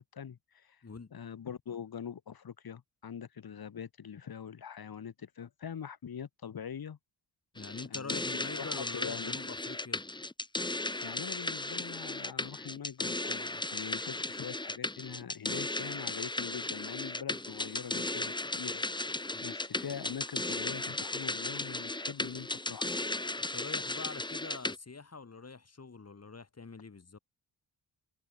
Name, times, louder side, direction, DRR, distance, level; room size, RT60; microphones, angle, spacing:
voice 1, 0.0-0.8 1.1-7.0 7.9-9.4 11.0-18.8 19.1-23.0, left 8 dB, 55° left, 1.6 m, -43 dB
voice 2, 7.5-10.0 19.3-19.4 23.5-27.2, left 4 dB, 35° left, 4.3 m, -45 dB
sound 1, 7.6-24.8, left 2 dB, 10° left, 1.0 m, -36 dB
wide cardioid pair, 155°, 44 cm